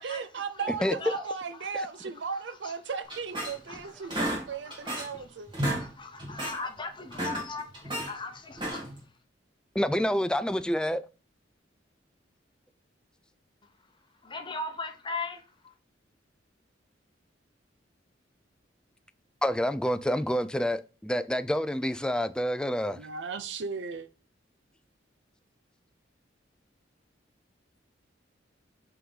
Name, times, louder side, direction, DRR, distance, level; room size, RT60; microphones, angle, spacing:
voice 1, 0.0-5.5 22.9-24.1, right 5 dB, 65° right, 0.5 m, -36 dB
voice 2, 0.5-1.3 1.6-2.1 2.3-2.8 3.5-5.3 5.8-8.9 14.2-15.7, left 3 dB, 25° left, 0.9 m, -40 dB
sound 1, 3.1-3.8 4.1-5.2 5.5-5.9 6.2-6.6 7.0-8.1 8.5-9.0, right 1 dB, 25° right, 2.1 m, -32 dB
voice 3, 9.8-11.0 19.4-23.0, equal, 5° left, 0.3 m, -28 dB
5.6 x 3.7 x 5.5 m
head